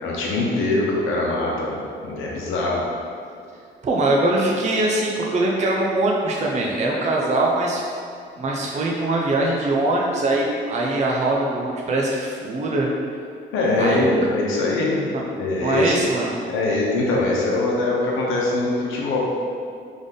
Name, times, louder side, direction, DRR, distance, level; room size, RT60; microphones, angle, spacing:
voice 1, 0.0-1.8 2.1-2.8 13.5-14.9 15.4-16.0 16.5-19.2, left 2 dB, 90° left, -3 dB, 0.9 m, -22 dB
voice 2, 3.8-7.8 8.4-12.9 13.8-14.1 15.1-15.2 15.6-16.4, right 2 dB, 35° right, -2 dB, 0.5 m, -22 dB
3.8 x 3.5 x 3.6 m, 2.3 s
cardioid pair, 90°, 20 cm